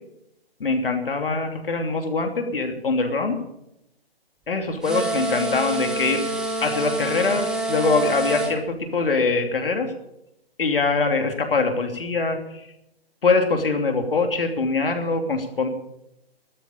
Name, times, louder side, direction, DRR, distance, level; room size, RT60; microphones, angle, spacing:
voice 1, 0.6-3.4 4.5-6.2 6.6-8.6 8.9-9.9 10.6-12.4 13.2-15.7, left 3 dB, 60° left, 5 dB, 3.0 m, -23 dB
sound 1, 4.8-8.5, right 2 dB, ahead, 0.8 m, -27 dB
13.0 x 10.5 x 8.7 m, 0.84 s
figure-of-eight pair, 145°, 31 cm